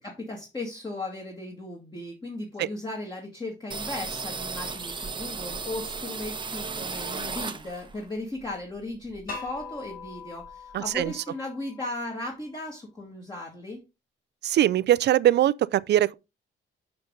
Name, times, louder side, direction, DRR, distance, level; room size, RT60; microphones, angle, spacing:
voice 1, 0.0-13.8, left 2 dB, 20° left, 2.0 m, -36 dB
sound 1, 3.7-8.0 8.4-9.8 10.0-10.1 10.4-11.1, right 4 dB, 25° right, 0.9 m, -35 dB
sound 2, 9.3-12.2, left 4 dB, 50° left, 3.4 m, -42 dB
voice 2, 14.4-16.1, right 12 dB, 60° right, 0.4 m, -21 dB
6.5 x 5.9 x 3.8 m
cardioid pair, 90°, 20 cm